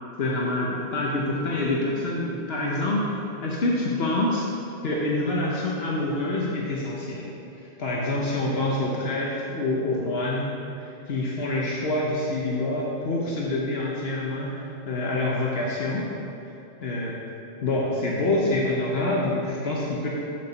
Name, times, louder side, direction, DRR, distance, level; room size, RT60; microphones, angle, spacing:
voice 1, 0.2-4.5 4.8-7.3 7.6-16.1 16.8-17.2 17.6-20.1, left 2 dB, 70° left, -4 dB, 1.2 m, -26 dB
6.7 x 5.2 x 6.9 m, 2.8 s
omnidirectional pair, 1.1 m